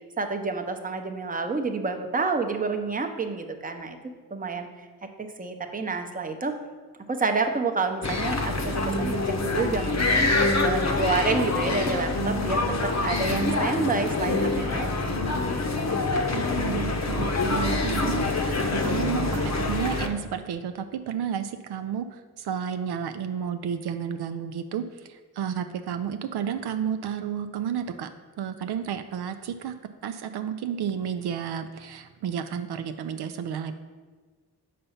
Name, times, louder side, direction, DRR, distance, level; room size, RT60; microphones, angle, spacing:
voice 1, 0.2-4.0 4.3-4.7 5.4-6.5 7.1-10.3 10.6-15.3, right 4 dB, 20° right, 5 dB, 0.7 m, -29 dB
sound 1, 8.0-20.1, left 2 dB, 40° left, 0.9 m, -25 dB
voice 2, 16.3-28.1 28.4-29.7 30.0-33.8, right 8 dB, 70° right, 8 dB, 0.5 m, -31 dB
5.5 x 4.2 x 5.7 m, 1.4 s
cardioid pair, 55°, 40 cm